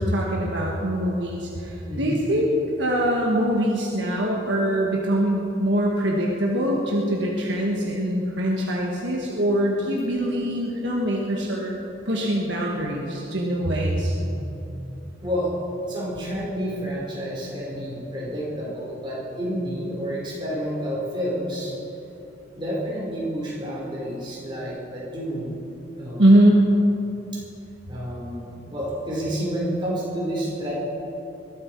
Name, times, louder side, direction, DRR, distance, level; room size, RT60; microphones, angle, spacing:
voice 1, 0.0-11.8 12.0-14.1 26.2-26.6, right 1 dB, 65° right, -2 dB, 1.6 m, -23 dB
voice 2, 1.9-2.2 14.1-15.5 15.9-21.7 22.5-25.6 25.9-26.3 27.3-27.4 27.9-30.7, equal, 25° right, -6 dB, 4.4 m, -30 dB
21.5 x 12.5 x 4.6 m, 3.0 s
head